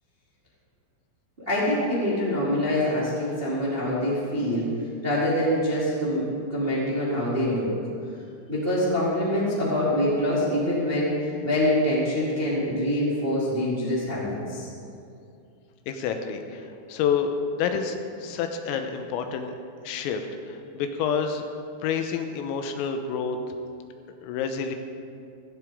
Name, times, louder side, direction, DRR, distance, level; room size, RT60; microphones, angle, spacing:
voice 1, 1.4-4.6 5.0-6.2 6.5-7.7 8.5-14.7, left 1 dB, 20° right, -7 dB, 1.5 m, -25 dB
voice 2, 15.9-19.6 19.9-21.4 21.8-23.6 24.2-24.8, left 6 dB, 85° left, 6 dB, 3.5 m, -28 dB
16.5 x 15.5 x 3.7 m, 2.5 s
omnidirectional pair, 6.0 m